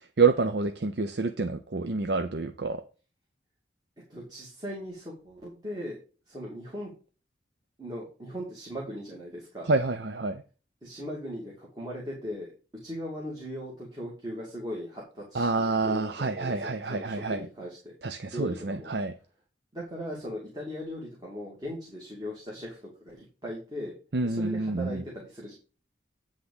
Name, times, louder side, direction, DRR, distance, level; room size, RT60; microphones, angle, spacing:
voice 1, 0.2-2.8 9.7-10.4 15.3-17.5 18.0-19.1 24.1-25.0, right 3 dB, 70° right, 0.7 m, -27 dB
voice 2, 4.1-6.0 6.3-6.9 7.8-9.7 10.8-12.5 12.8-17.9 18.3-18.9 19.7-23.9 24.2-25.5, equal, 20° right, 2.4 m, -38 dB
9.8 x 3.7 x 7.0 m
head